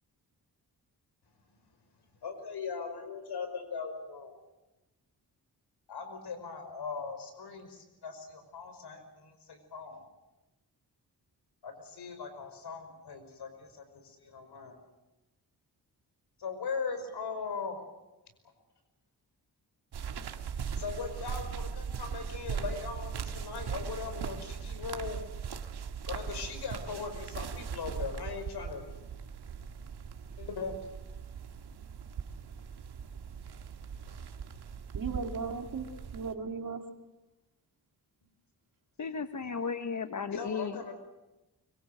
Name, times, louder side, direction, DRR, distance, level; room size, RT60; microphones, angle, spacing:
voice 1, 2.2-4.4 5.9-10.0 11.6-14.8 16.4-17.8 20.8-25.2 26.1-28.8 30.4-30.7 39.4-39.5 40.3-40.9, left 5 dB, 85° left, 8 dB, 5.3 m, -39 dB
sound 1, 19.9-36.3, right 6 dB, 85° right, 1.8 m, -39 dB
voice 2, 34.9-35.9 36.1-36.8, right 5 dB, 60° right, 4 dB, 3.0 m, -36 dB
voice 3, 39.0-40.8, left 5 dB, 50° left, 9 dB, 1.2 m, -35 dB
24.5 x 24.0 x 7.8 m, 1.0 s
cardioid pair, 85°, 38 cm